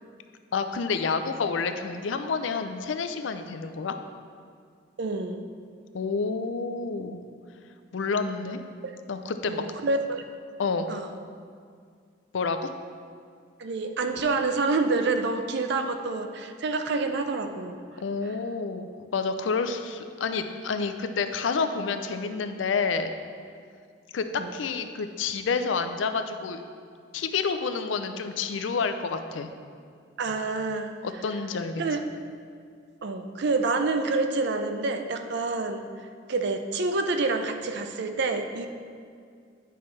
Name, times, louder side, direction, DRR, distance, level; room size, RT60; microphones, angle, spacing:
voice 1, 0.5-4.0 5.9-7.2 7.9-8.6 9.1-9.6 10.6-10.9 12.3-12.7 18.0-18.9 19.1-23.1 24.1-26.6 27.1-29.5 31.0-31.8, left 5 dB, 75° left, 8 dB, 0.5 m, -29 dB
voice 2, 5.0-5.4 8.8-9.0 9.5-10.2 10.9-11.1 13.6-17.8 24.4-24.5 30.2-31.0 31.8-32.0 33.0-35.9 36.3-38.7, right 3 dB, 65° right, 6 dB, 0.5 m, -27 dB
9.1 x 5.7 x 3.2 m, 2.2 s
head